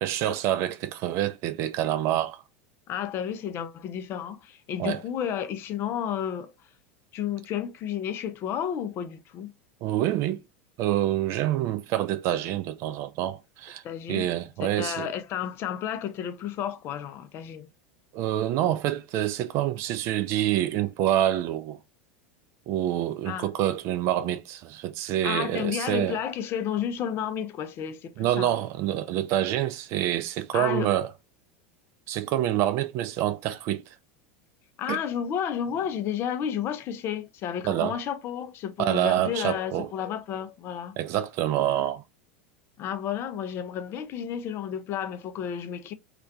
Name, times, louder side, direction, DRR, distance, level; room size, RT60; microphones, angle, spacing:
voice 1, 0.0-2.4 4.8-5.0 9.8-10.4 10.8-13.8 14.1-15.1 18.1-21.8 22.7-26.2 28.2-31.1 32.1-33.8 34.9-35.0 37.6-38.0 38.8-39.9 41.0-42.0, right 12 dB, 45° right, 0.3 m, -27 dB
voice 2, 2.9-6.5 7.1-9.5 13.8-14.3 14.6-17.7 23.2-23.5 25.1-28.5 30.5-30.9 34.8-41.0 42.8-45.9, left 9 dB, 40° left, 0.3 m, -32 dB
2.3 x 2.1 x 2.5 m
figure-of-eight pair, 85°, 6 cm